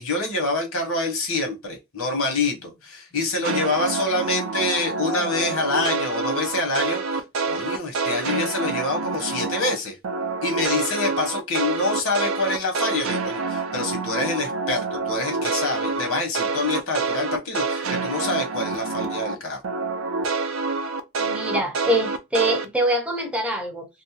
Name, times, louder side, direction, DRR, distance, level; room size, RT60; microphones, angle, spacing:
voice 1, 0.0-10.0 10.4-19.6, left 2 dB, 75° left, 1.1 m, -26 dB
sound 1, 3.4-9.8 10.0-19.4 19.6-22.7, right 4 dB, 70° right, 0.4 m, -27 dB
voice 2, 21.2-23.9, right 1 dB, 5° right, 0.6 m, -24 dB
2.6 x 2.1 x 2.7 m
head